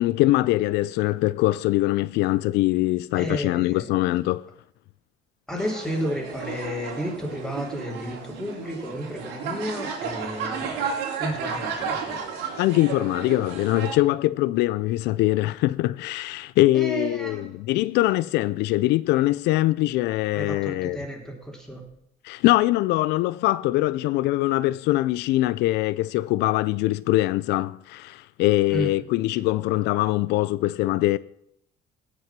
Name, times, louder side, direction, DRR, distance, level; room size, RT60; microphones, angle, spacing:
voice 1, 0.0-4.5 12.6-21.0 22.2-31.2, left 17 dB, 85° left, 0.4 m, -23 dB
voice 2, 3.1-3.8 5.5-12.2 16.7-17.5 20.3-21.8 28.7-28.9, equal, 5° left, 3.3 m, -32 dB
sound 1, 5.6-14.0, right 6 dB, 90° right, 2.7 m, -33 dB
17.0 x 6.1 x 5.9 m
cardioid pair, 110°, 17 cm